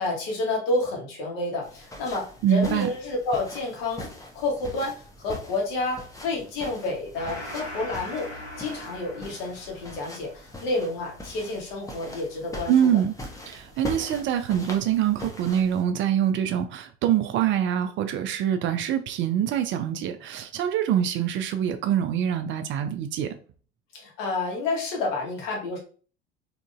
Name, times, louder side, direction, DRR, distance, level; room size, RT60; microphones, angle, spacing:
voice 1, 0.0-4.1 4.3-8.3 8.6-12.9 23.9-25.8, left 2 dB, 60° left, 1.4 m, -29 dB
sound 1, 1.6-15.8, left 1 dB, 10° left, 0.8 m, -42 dB
voice 2, 2.4-2.9 12.7-13.1 13.5-23.3, right 9 dB, 35° right, 0.4 m, -24 dB
Gong, 7.1-14.1, equal, 85° left, 1.3 m, -42 dB
3.7 x 2.9 x 2.4 m
figure-of-eight pair, 70°, 33 cm